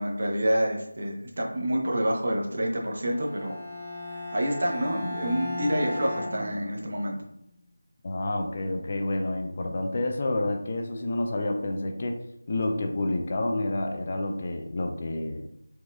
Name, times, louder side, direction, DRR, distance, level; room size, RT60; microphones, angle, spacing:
voice 1, 0.0-3.6 4.1-7.2, equal, 55° right, -1 dB, 0.7 m, -28 dB
Bowed string instrument, 3.0-7.1, left 1 dB, 20° right, 0.5 m, -36 dB
voice 2, 8.0-12.2 12.5-15.5, left 2 dB, 35° left, 4 dB, 0.3 m, -29 dB
4.1 x 2.3 x 2.3 m, 0.77 s
figure-of-eight pair, 170°, 0 cm